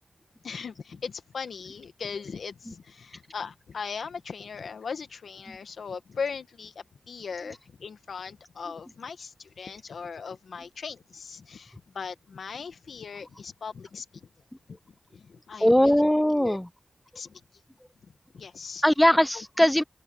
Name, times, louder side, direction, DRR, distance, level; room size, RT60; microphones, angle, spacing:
voice 1, 0.4-6.7 7.1-14.3 14.7-14.8 15.1-16.6 17.2-17.4 18.0-18.8 19.3-19.4, left 5 dB, 85° left, 1.8 m, -39 dB
voice 2, 15.6-16.7 18.8-19.8, left 1 dB, 10° left, 0.5 m, -21 dB
cardioid pair, 50°, 0 cm